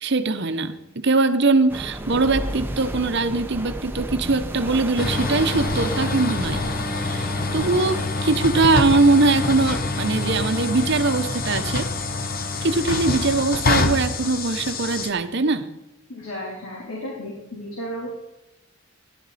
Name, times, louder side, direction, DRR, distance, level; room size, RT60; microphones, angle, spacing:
voice 1, 0.0-6.6 7.0-11.9 12.6-15.7, right 3 dB, 50° right, 10 dB, 0.8 m, -21 dB
sound 1, 1.7-8.1, right 1 dB, 10° right, 0.7 m, -33 dB
sound 2, 5.0-15.1, left 3 dB, 40° left, 1.0 m, -26 dB
voice 2, 16.1-18.1, equal, 70° left, -4 dB, 3.4 m, -33 dB
14.0 x 11.5 x 4.2 m, 0.98 s
head